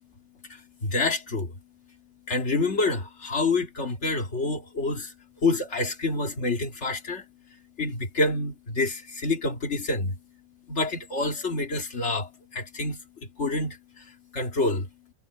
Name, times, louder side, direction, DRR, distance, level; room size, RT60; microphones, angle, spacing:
voice 1, 0.8-1.5 2.3-5.1 5.4-7.2 7.8-9.0 9.2-10.1 10.7-12.3 12.6-13.0 13.4-13.7 14.3-14.8, left 2 dB, 50° left, 2.4 m, -27 dB
omnidirectional pair, 1.6 m